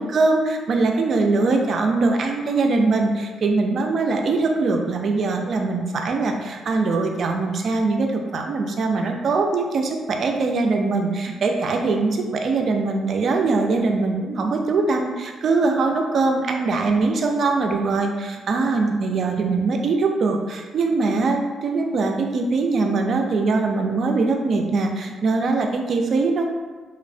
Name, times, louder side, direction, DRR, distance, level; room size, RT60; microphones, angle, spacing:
voice 1, 0.0-26.5, right 3 dB, 55° right, 3 dB, 0.3 m, -22 dB
2.9 x 2.0 x 2.5 m, 1.3 s
cardioid pair, 95°, 0 cm